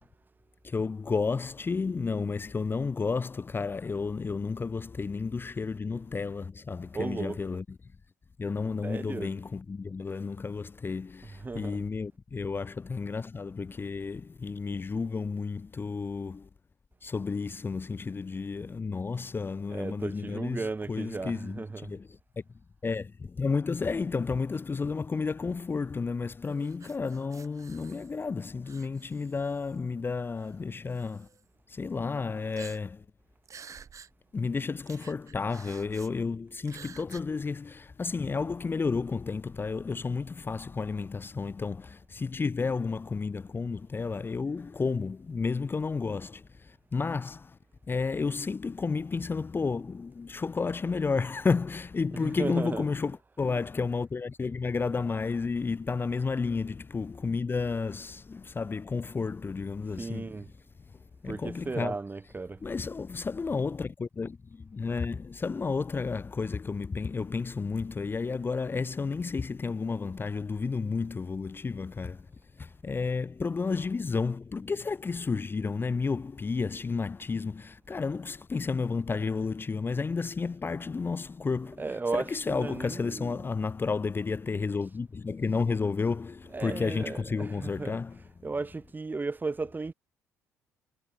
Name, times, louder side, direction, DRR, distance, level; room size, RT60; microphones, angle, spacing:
voice 1, 0.6-7.6 8.4-16.5 17.0-22.1 22.8-31.3 31.7-33.0 34.3-47.6 47.9-60.3 61.2-61.9 62.6-72.2 72.6-81.8 82.1-88.2, left 4 dB, 30° left, 0.8 m, -32 dB
voice 2, 6.9-7.6 8.8-9.3 11.2-11.8 19.7-22.0 52.1-52.8 60.0-60.5 61.2-62.6 81.8-83.5 86.5-88.0 88.4-89.9, right 3 dB, 25° right, 1.8 m, -35 dB
sound 1, 26.4-28.3 28.6-29.8 30.4-30.5 30.9-31.4 32.5-33.1 33.4-34.1 34.4-34.5 34.8-36.1 36.6-37.2, right 6 dB, 45° right, 4.5 m, -50 dB
hypercardioid pair, 55°, 8 cm